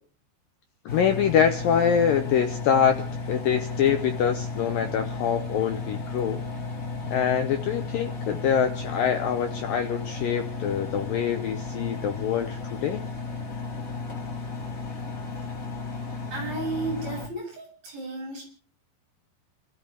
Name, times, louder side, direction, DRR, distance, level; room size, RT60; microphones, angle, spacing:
voice 1, 0.9-6.4 7.1-13.0, left 8 dB, 85° left, 7 dB, 2.0 m, -25 dB
Engine, 0.9-17.3, left 3 dB, 40° left, 1.2 m, -34 dB
voice 2, 16.3-18.4, right 3 dB, 35° right, -2 dB, 9.1 m, -33 dB
29.0 x 13.5 x 3.4 m, 0.43 s
omnidirectional pair, 5.3 m